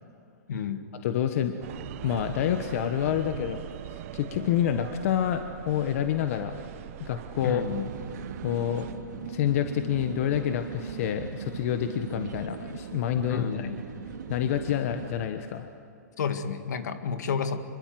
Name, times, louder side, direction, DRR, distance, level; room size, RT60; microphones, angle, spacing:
voice 1, 0.5-0.9 7.4-7.9 13.3-13.8 16.2-17.6, left 6 dB, 70° left, 8 dB, 2.0 m, -30 dB
voice 2, 1.0-1.5 2.0-3.6 3.9-6.6 7.0-7.7 8.4-8.9 9.3-13.7 14.3-15.7, left 10 dB, 50° left, 8 dB, 1.3 m, -28 dB
sound 1, 1.6-8.9, right 13 dB, 50° right, 1.0 m, -41 dB
sound 2, 7.6-15.2, right 6 dB, 80° right, 2.3 m, -39 dB
26.0 x 22.5 x 7.8 m, 2.5 s
hypercardioid pair, 140°, 10 cm